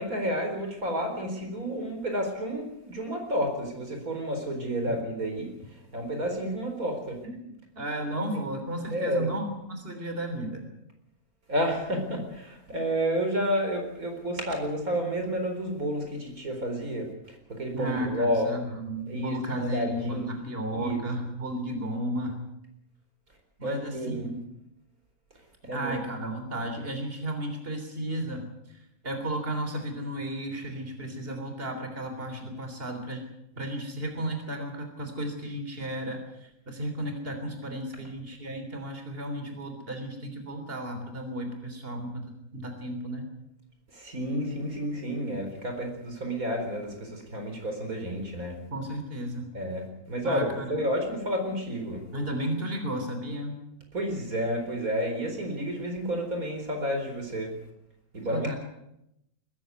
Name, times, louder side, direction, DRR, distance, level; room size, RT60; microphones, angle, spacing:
voice 1, 0.0-7.2 8.3-8.4 8.9-9.3 11.5-18.5 19.1-20.3 20.7-21.0 23.6-24.3 25.6-26.0 43.9-48.6 49.5-52.1 53.9-57.5 58.1-58.6, equal, 85° right, 4 dB, 4.8 m, -30 dB
voice 2, 7.2-10.7 17.7-22.4 23.6-24.3 25.7-28.5 29.0-33.2 33.6-43.3 48.7-49.5 50.2-50.8 52.1-53.6 58.3-58.6, right 1 dB, 40° right, 6 dB, 3.7 m, -34 dB
21.5 x 14.5 x 9.4 m, 0.83 s
omnidirectional pair, 1.5 m